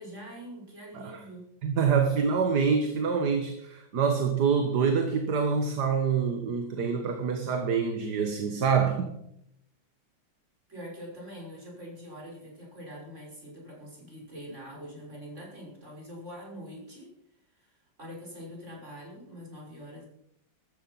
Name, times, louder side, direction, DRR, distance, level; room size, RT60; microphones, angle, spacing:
voice 1, 0.0-1.4 10.7-17.1 17.5-20.1, equal, 35° right, -2 dB, 6.3 m, -44 dB
voice 2, 1.6-9.2, right 6 dB, 60° right, 6 dB, 1.9 m, -26 dB
15.0 x 13.5 x 5.8 m, 0.76 s
omnidirectional pair, 2.1 m